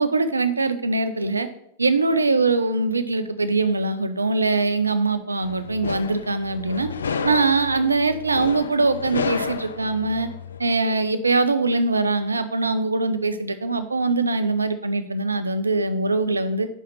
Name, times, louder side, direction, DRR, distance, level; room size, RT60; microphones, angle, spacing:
voice 1, 0.0-1.5 1.8-6.9 7.2-10.3 10.6-16.7, right 3 dB, 80° right, 11 dB, 0.6 m, -22 dB
sound 1, 5.4-10.6, left 6 dB, 70° left, 0.4 m, -31 dB
5.4 x 4.9 x 5.8 m, 0.73 s
figure-of-eight pair, 90°, 0 cm